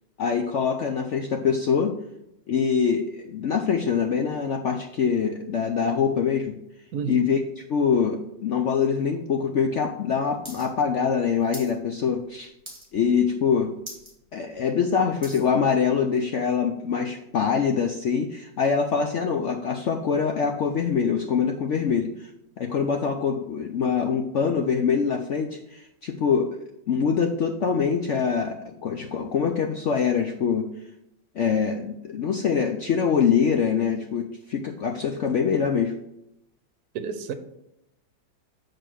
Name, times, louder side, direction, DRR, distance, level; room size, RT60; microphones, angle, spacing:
voice 1, 0.2-2.0 2.5-6.6 7.1-12.5 12.9-13.7 14.3-22.3 22.6-26.6 26.9-30.7 31.4-35.9, left 6 dB, 75° left, 0.6 m, -24 dB
voice 2, 6.9-7.3 36.9-37.3, right 6 dB, 65° right, 1.2 m, -30 dB
sound 1, 10.4-10.7 10.9-11.7 12.1-12.3 12.6-13.1 13.5-13.6 13.8-14.1 14.6-15.5 16.1-16.2, right 1 dB, 15° right, 2.0 m, -41 dB
8.2 x 4.4 x 6.1 m
omnidirectional pair, 1.9 m